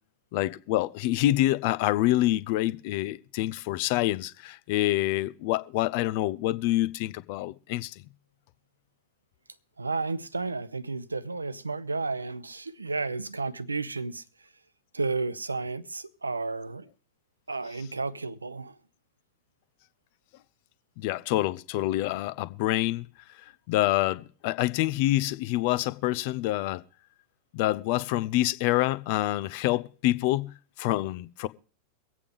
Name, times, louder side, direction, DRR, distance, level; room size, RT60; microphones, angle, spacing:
voice 1, 0.3-8.0 21.0-23.1 23.7-26.8 27.5-31.5, left 16 dB, 45° left, 0.5 m, -27 dB
voice 2, 9.8-14.2 14.9-16.9 17.5-18.8, right 3 dB, 80° right, 0.6 m, -32 dB
23.5 x 8.4 x 3.5 m
figure-of-eight pair, 90°, 0 cm